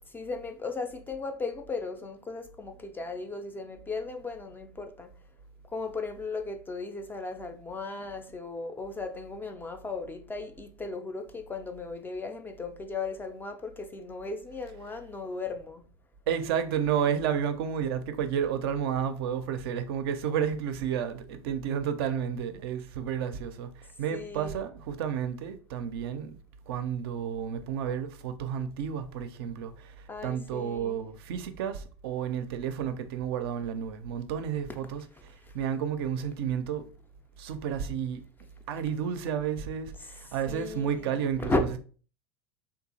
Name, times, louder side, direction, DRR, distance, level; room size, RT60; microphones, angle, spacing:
voice 1, 0.0-5.1 5.7-15.9 24.1-24.7 30.1-31.1 35.4-35.6 40.0-41.8, left 3 dB, 15° left, 0.3 m, -36 dB
voice 2, 16.3-26.4 26.7-29.9 30.2-36.9 37.4-38.2 38.7-41.7, right 8 dB, 60° right, 0.4 m, -31 dB
2.9 x 2.3 x 2.6 m
figure-of-eight pair, 80°, 15 cm